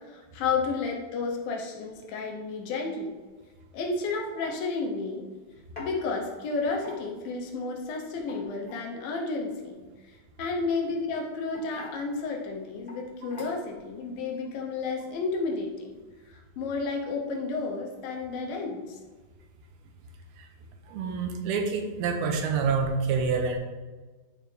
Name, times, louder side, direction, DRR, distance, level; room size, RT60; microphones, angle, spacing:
voice 1, 0.1-3.1 3.7-5.2 5.8-16.0 16.3-19.0, left 4 dB, 75° left, 1 dB, 2.6 m, -32 dB
sound 1, 3.7-3.9 4.4-4.6 5.8-5.9 6.7-7.3 8.1-8.9 10.5-10.8 11.5-12.0 12.9-13.0 13.3-13.8, left 1 dB, 20° left, 1.8 m, -43 dB
voice 2, 20.9-23.6, right 5 dB, 85° right, 3 dB, 2.8 m, -27 dB
11.5 x 4.7 x 3.3 m, 1.3 s
omnidirectional pair, 4.4 m